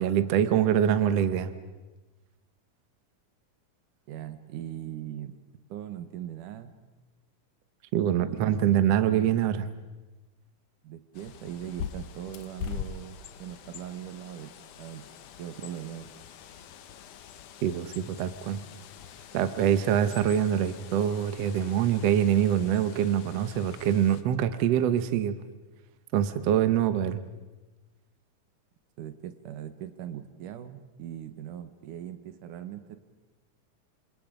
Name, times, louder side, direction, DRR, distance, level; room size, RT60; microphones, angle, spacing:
voice 1, 0.0-1.5 7.9-9.7 17.6-18.6 19.3-25.4 26.1-27.2, right 10 dB, 65° right, 11 dB, 2.0 m, -24 dB
voice 2, 4.1-5.4 5.7-6.7 8.3-9.1 10.8-14.5 14.8-15.0 15.4-16.1 29.0-33.0, right 11 dB, 85° right, 10 dB, 2.8 m, -40 dB
Bird, 11.1-24.2, left 8 dB, 80° left, 2.6 m, -44 dB
28.5 x 26.5 x 5.1 m, 1.1 s
omnidirectional pair, 3.6 m